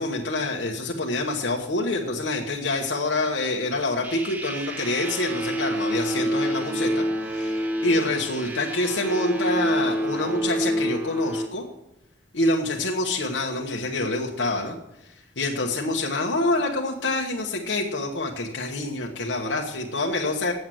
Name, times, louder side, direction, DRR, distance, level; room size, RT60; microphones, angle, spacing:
voice 1, 0.0-11.7 12.3-14.8 15.0-20.5, left 2 dB, 75° left, 0 dB, 1.2 m, -26 dB
sound 1, 4.0-11.5, right 1 dB, 10° right, 0.9 m, -27 dB
7.8 x 7.6 x 7.8 m, 0.89 s
head